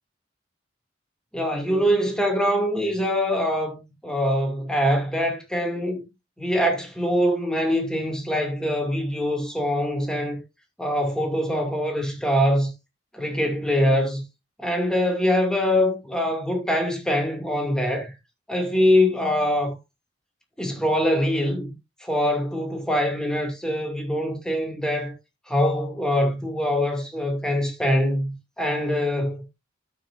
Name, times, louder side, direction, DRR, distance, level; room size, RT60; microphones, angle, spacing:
voice 1, 1.3-6.0 6.4-10.4 10.8-12.7 13.1-14.2 14.6-18.1 18.5-19.8 20.6-21.7 22.0-25.1 25.5-29.4, equal, 5° left, 2.5 m, -23 dB
13.0 x 6.4 x 2.6 m
head